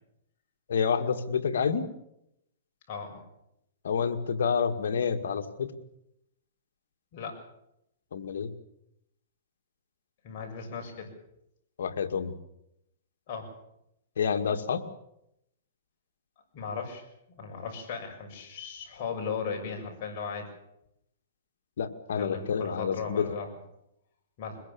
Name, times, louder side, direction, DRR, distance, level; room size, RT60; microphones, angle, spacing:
voice 1, 0.7-1.9 3.8-5.7 8.1-8.5 11.8-12.4 14.2-14.9 21.8-23.3, left 6 dB, 80° left, 6 dB, 2.1 m, -28 dB
voice 2, 2.9-3.2 7.1-7.4 10.2-11.1 13.3-13.5 16.5-17.0 17.4-20.5 22.2-23.5 24.4-24.6, left 5 dB, 45° left, 2 dB, 6.8 m, -37 dB
23.0 x 21.0 x 7.1 m, 0.79 s
hypercardioid pair, 150°, 0 cm